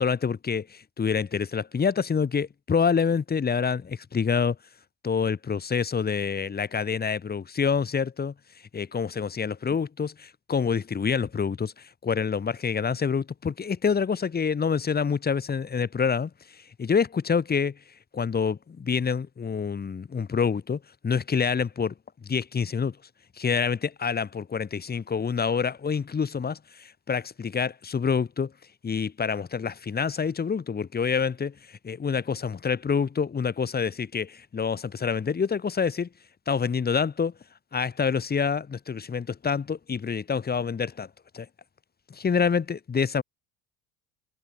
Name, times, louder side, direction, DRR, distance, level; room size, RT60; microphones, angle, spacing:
voice 1, 0.0-4.6 5.0-8.3 8.7-16.3 16.8-17.7 18.1-21.9 22.2-23.0 23.4-28.5 28.8-36.1 36.5-37.3 37.7-41.1 41.3-41.5 42.1-43.2, left 6 dB, 25° left, 2.5 m, -27 dB
hypercardioid pair, 80°, 39 cm